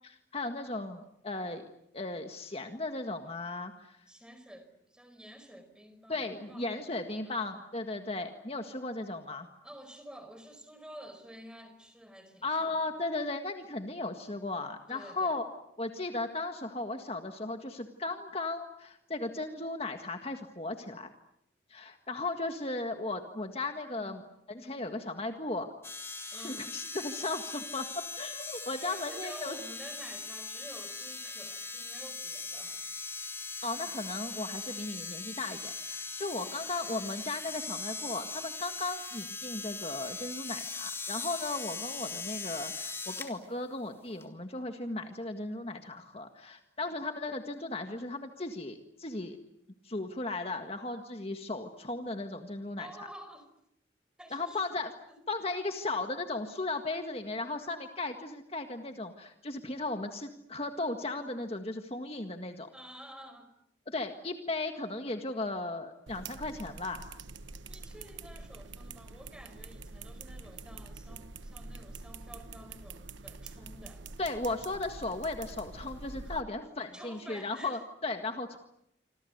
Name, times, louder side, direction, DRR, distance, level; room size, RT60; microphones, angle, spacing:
voice 1, 0.3-4.0 6.1-9.5 12.4-15.4 15.8-21.1 21.7-24.2 24.5-25.7 26.4-29.6 33.6-49.4 49.8-52.9 54.3-54.9 55.3-62.7 63.9-67.1 74.2-78.6, left 2 dB, 30° left, 5 dB, 1.8 m, -36 dB
voice 2, 4.1-7.0 7.2-7.6 9.6-12.9 14.9-15.4 24.0-24.1 24.5-24.8 26.3-26.7 28.8-32.9 52.8-53.5 54.2-54.7 55.1-55.2 62.7-63.5 67.7-74.0 76.2-76.3 76.8-77.8, equal, 5° right, 9 dB, 4.9 m, -50 dB
sound 1, 25.8-43.3 44.2-44.3, left 4 dB, 15° left, 3.5 m, -40 dB
sound 2, 66.1-76.4, right 3 dB, 90° right, 1.2 m, -46 dB
27.0 x 26.5 x 8.1 m, 0.80 s
head